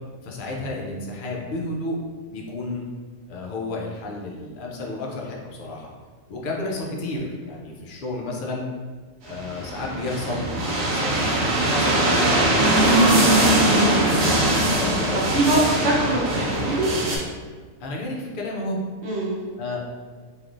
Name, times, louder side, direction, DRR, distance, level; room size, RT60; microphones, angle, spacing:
voice 1, 0.2-2.0 2.3-2.9 3.3-5.9 6.3-8.6 9.2-11.3 11.6-13.1 14.7-16.2 17.8-18.8 19.6-19.8, left 2 dB, 65° left, -1 dB, 0.5 m, -32 dB
sound 1, 9.3-17.2, right 1 dB, 80° right, 1.0 m, -21 dB
voice 2, 15.3-16.9 19.0-19.4, right 1 dB, 60° right, -4 dB, 1.0 m, -24 dB
3.4 x 2.5 x 2.4 m, 1.5 s
omnidirectional pair, 1.4 m